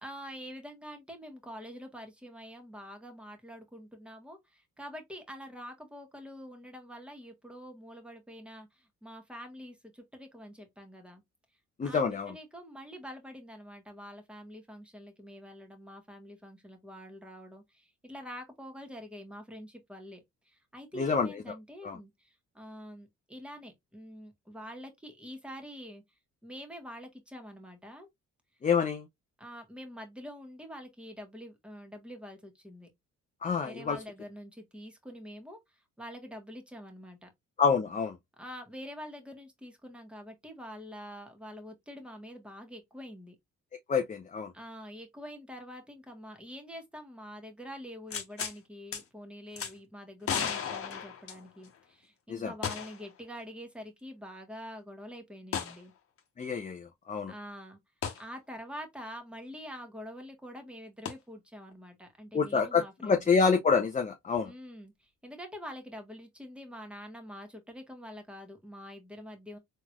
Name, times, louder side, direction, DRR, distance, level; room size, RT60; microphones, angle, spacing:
voice 1, 0.0-11.2 11.8-26.0 26.4-28.1 29.4-32.9 33.6-35.6 36.0-37.3 38.4-43.4 44.5-55.9 57.3-57.8 58.2-63.3 64.4-69.6, equal, 5° right, 1.4 m, -46 dB
voice 2, 11.8-12.3 21.0-21.3 21.8-22.0 28.6-29.0 33.4-34.0 37.6-38.2 43.9-44.5 52.3-52.5 56.4-57.3 62.3-64.5, left 5 dB, 25° left, 0.5 m, -27 dB
sound 1, 48.1-48.6 48.9-49.0 49.6-49.7 50.2-51.8 52.6-53.1 53.4-53.5 55.5-55.8 58.0-58.2 61.0-61.1, left 7 dB, 45° left, 1.1 m, -34 dB
3.8 x 3.1 x 2.4 m
cardioid pair, 90°, 30 cm